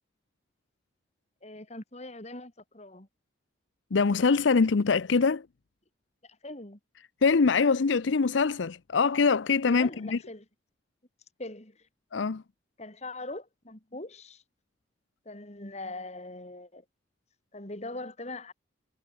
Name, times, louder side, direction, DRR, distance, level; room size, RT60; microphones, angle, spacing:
voice 1, 1.4-3.1 6.2-6.8 9.7-10.4 11.4-11.8 12.8-14.4 15.2-16.8 17.5-18.5, left 2 dB, 35° left, 2.9 m, -41 dB
voice 2, 3.9-5.5 7.2-10.2 12.1-12.4, left 4 dB, 80° left, 0.6 m, -24 dB
head